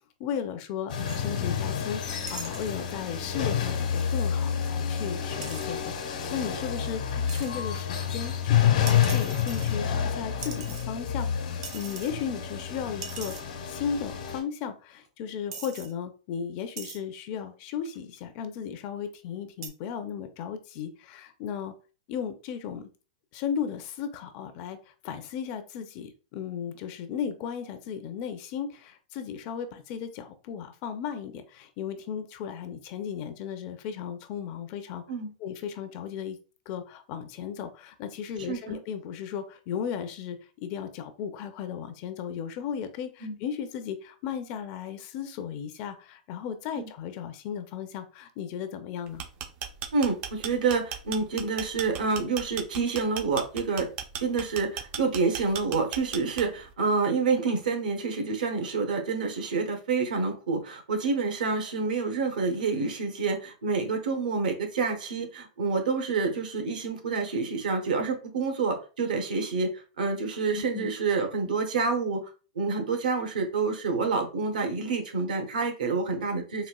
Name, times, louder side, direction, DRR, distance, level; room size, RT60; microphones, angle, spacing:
voice 1, 0.2-7.0 7.3-13.3 13.6-21.7 22.1-22.9 23.3-35.0 35.4-36.4 36.7-49.2 70.5-70.9, left 8 dB, 35° left, 8 dB, 0.4 m, -35 dB
sound 1, 0.9-14.4, left 8 dB, 65° left, 1.0 m, -29 dB
sound 2, 1.1-1.3 2.3-2.7 5.4-5.7 7.3-7.5 8.9-10.0 10.4-11.2 11.6-12.1 12.5-12.6 13.0-13.5 14.4-14.5 15.1-15.2 15.5-15.9 16.8-17.0 17.9-18.2 19.6-19.7, right 6 dB, 55° right, 0.7 m, -41 dB
voice 2, 38.5-38.8 43.2-43.4 46.7-46.9 49.9-53.9 54.2-72.2 72.5-76.7, right 4 dB, 85° right, 4 dB, 0.9 m, -28 dB
sound 3, 49.1-56.7, right 8 dB, 30° right, 0.3 m, -36 dB
4.1 x 2.4 x 2.2 m, 0.35 s
hypercardioid pair, 155°, 4 cm